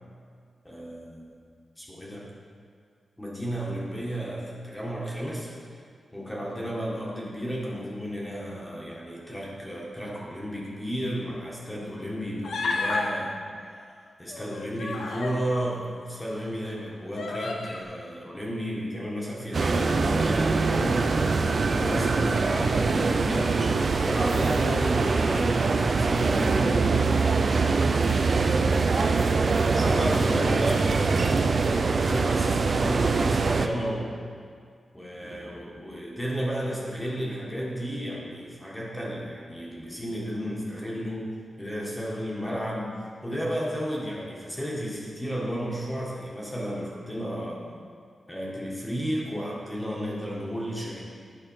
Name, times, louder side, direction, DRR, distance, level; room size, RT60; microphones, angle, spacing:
voice 1, 0.6-1.4 1.8-2.2 3.2-5.5 6.1-13.4 14.2-21.1 21.7-23.5 24.0-27.8 28.7-34.2 34.9-41.3 41.6-42.9 43.2-47.6 48.3-51.0, equal, 10° left, -4 dB, 1.7 m, -33 dB
Human voice, 12.4-13.1 14.3-15.4 16.2-16.3 17.1-17.8, left 3 dB, 80° left, 0.9 m, -31 dB
sound 1, 19.5-33.7, right 4 dB, 50° right, 0.5 m, -23 dB
10.5 x 5.5 x 5.6 m, 2.1 s
wide cardioid pair, 110°, 0 cm